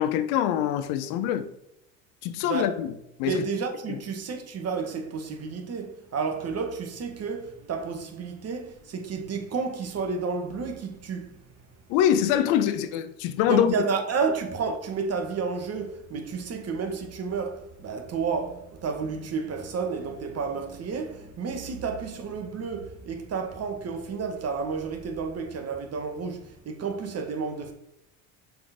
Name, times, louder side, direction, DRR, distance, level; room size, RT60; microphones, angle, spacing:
voice 1, 0.0-1.5 2.2-2.9 3.2-3.4 11.9-13.8, left 10 dB, 70° left, 0.9 m, -24 dB
voice 2, 2.4-2.9 3.2-11.4 13.5-27.7, right 5 dB, 40° right, 1.4 m, -31 dB
7.0 x 3.9 x 5.1 m
hypercardioid pair, 75°, 39 cm